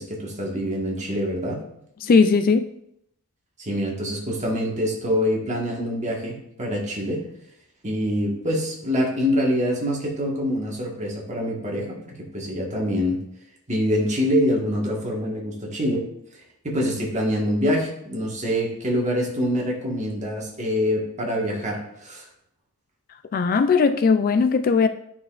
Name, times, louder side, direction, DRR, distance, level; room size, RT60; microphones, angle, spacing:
voice 1, 0.0-1.6 3.6-7.2 7.8-13.2 13.7-16.0 16.6-22.2, equal, 30° right, -2 dB, 1.6 m, -25 dB
voice 2, 2.0-2.7 23.3-24.9, left 5 dB, 40° left, 10 dB, 0.3 m, -18 dB
9.5 x 5.8 x 2.5 m, 0.75 s
head